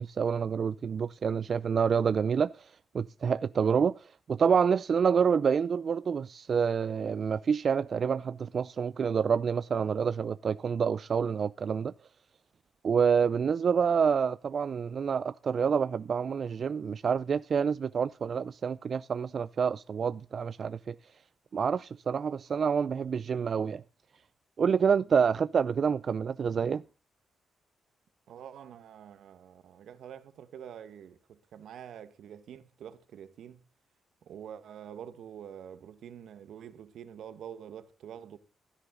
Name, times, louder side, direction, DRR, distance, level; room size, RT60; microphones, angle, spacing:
voice 1, 0.0-2.6 2.9-11.9 12.8-20.9 21.5-23.8 24.6-26.8, right 6 dB, 55° right, 0.5 m, -27 dB
voice 2, 28.3-33.6 34.2-38.4, right 9 dB, 80° right, 1.5 m, -46 dB
16.0 x 10.5 x 3.9 m
cardioid pair, 75°, 0 cm